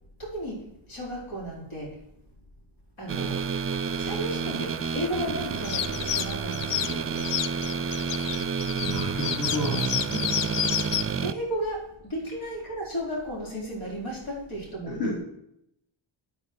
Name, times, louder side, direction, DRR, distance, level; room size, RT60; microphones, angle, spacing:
voice 1, 0.2-1.9 3.0-3.4 4.0-7.3 10.1-10.3 11.2-15.0, equal, 80° left, -4 dB, 4.6 m, -34 dB
sound 1, 3.1-11.3, right 6 dB, 30° right, 0.5 m, -30 dB
sound 2, 5.6-11.0, left 11 dB, 65° left, 0.5 m, -30 dB
voice 2, 8.8-9.9 14.9-15.2, equal, 50° left, -4 dB, 3.4 m, -30 dB
9.0 x 8.7 x 4.7 m, 0.77 s
cardioid pair, 90°, 47 cm